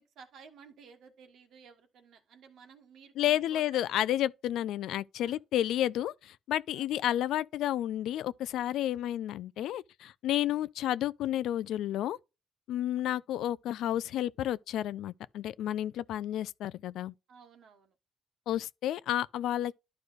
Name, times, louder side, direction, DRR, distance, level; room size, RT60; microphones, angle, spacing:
voice 1, 0.0-3.9 5.2-5.4 6.7-6.9 10.4-10.5 17.3-17.9, right 6 dB, 75° right, 1.4 m, -55 dB
voice 2, 3.2-12.2 12.7-17.1 18.5-19.7, left 12 dB, 85° left, 0.3 m, -31 dB
11.5 x 4.8 x 2.5 m
cardioid pair, 100°, 0 cm